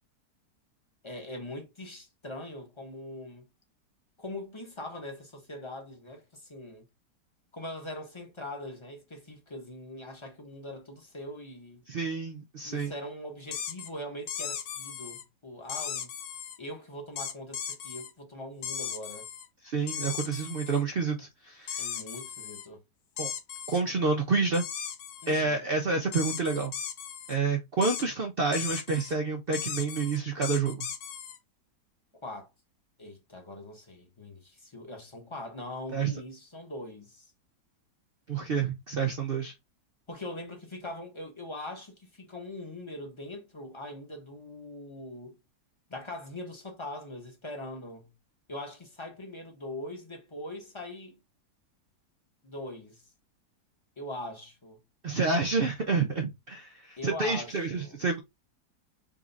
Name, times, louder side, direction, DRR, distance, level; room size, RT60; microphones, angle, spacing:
voice 1, 1.0-3.5 4.2-6.9 7.5-11.8 12.6-16.1 16.6-19.3 21.8-22.8 25.2-25.7 32.2-32.5 33.0-37.3 40.1-45.4 45.9-48.1 48.5-51.2 52.4-53.0 54.0-54.8 57.0-58.0, left 1 dB, 20° left, 0.8 m, -42 dB
voice 2, 11.9-12.9 19.6-21.8 23.2-23.3 23.7-24.6 25.3-26.7 27.3-30.9 35.9-36.1 38.3-39.5 55.0-58.2, right 4 dB, 80° right, 0.5 m, -29 dB
sound 1, 13.5-13.9 14.3-15.2 15.7-16.6 17.2-18.1 18.6-19.5 19.9-20.8 21.7-22.7 23.2-23.8 24.5-25.4 26.1-27.4 27.8-28.1 28.5-29.1 29.5-31.4, left 8 dB, 65° left, 1.1 m, -37 dB
4.0 x 2.5 x 3.9 m
omnidirectional pair, 1.9 m